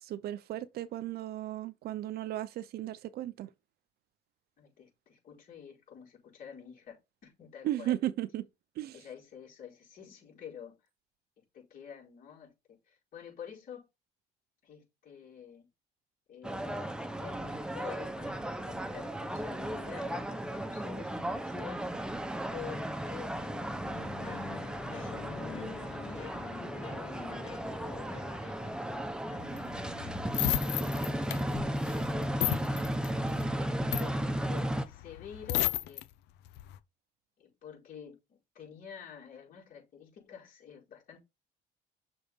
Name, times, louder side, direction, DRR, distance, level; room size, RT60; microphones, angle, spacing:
voice 1, 0.0-3.5 7.6-8.5 8.8-9.0, right 13 dB, 70° right, 0.7 m, -35 dB
voice 2, 4.6-8.0 8.9-10.8 11.4-13.8 14.6-15.7 16.3-22.1 22.5-24.3 24.9-28.6 29.3-32.1 33.4-36.0 37.4-41.2, left 8 dB, 55° left, 4.8 m, -49 dB
sound 1, 16.4-34.9, right 1 dB, 5° right, 0.9 m, -35 dB
sound 2, 23.8-28.8, left 8 dB, 35° left, 0.6 m, -46 dB
sound 3, 29.4-36.0 36.5-36.8, left 15 dB, 85° left, 0.6 m, -34 dB
6.6 x 4.0 x 5.2 m
cardioid pair, 110°, 17 cm